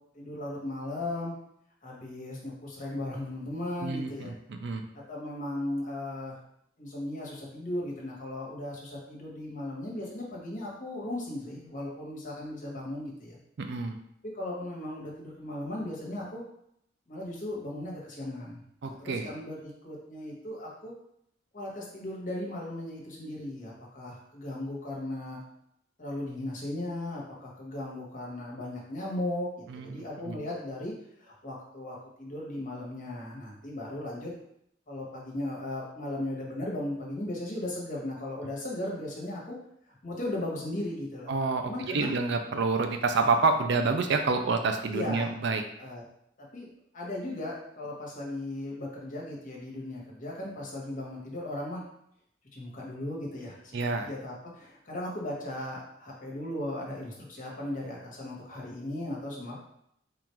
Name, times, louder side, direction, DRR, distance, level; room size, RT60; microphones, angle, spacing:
voice 1, 0.1-1.3 1.8-4.3 5.1-6.4 6.8-13.4 14.3-16.4 17.1-20.9 21.5-25.4 26.0-29.5 29.8-30.9 31.2-34.3 34.9-39.6 39.9-41.3 41.6-42.1 44.9-45.3 45.8-46.0 46.4-46.7 46.9-51.8 52.5-59.6, left 1 dB, 45° left, -4 dB, 1.3 m, -37 dB
voice 2, 3.8-4.9 13.6-14.0 18.8-19.3 29.7-30.4 41.3-45.6 53.7-54.1, right 4 dB, 65° right, 6 dB, 0.5 m, -28 dB
3.7 x 2.5 x 4.4 m, 0.74 s
head